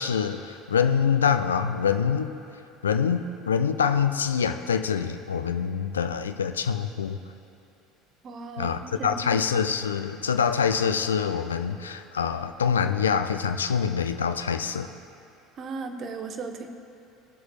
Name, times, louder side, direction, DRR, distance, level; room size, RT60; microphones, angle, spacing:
voice 1, 0.0-2.3 2.8-7.2 8.6-14.9, left 7 dB, 75° left, 9 dB, 0.4 m, -25 dB
voice 2, 8.2-9.4 15.6-16.7, right 4 dB, 40° right, 6 dB, 0.9 m, -36 dB
22.0 x 7.8 x 2.4 m, 2.7 s
figure-of-eight pair, 65°, 0 cm